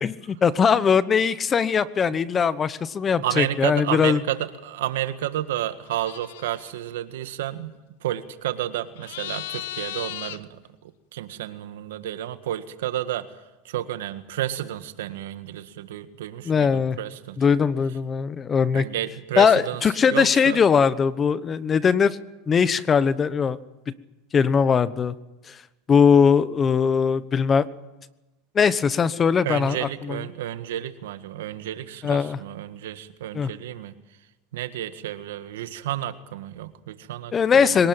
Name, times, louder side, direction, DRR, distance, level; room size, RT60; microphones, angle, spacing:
voice 1, 0.0-4.2 16.4-17.0 17.4-18.8 19.4-22.2 22.5-23.6 24.3-25.1 25.5-25.6 25.9-27.7 28.5-30.2 32.0-32.4 33.3-33.5 37.3-37.9, left 6 dB, 25° left, 16 dB, 1.0 m, -20 dB
voice 2, 3.2-7.7 8.0-13.4 13.6-17.4 18.7-20.6 29.4-33.9 34.5-37.3 37.6-37.8, right 12 dB, 85° right, 10 dB, 1.7 m, -31 dB
sound 1, 5.9-6.7 9.0-10.4, left 13 dB, 80° left, 1.1 m, -36 dB
22.5 x 19.0 x 9.0 m, 1.0 s
supercardioid pair, 120°, 0 cm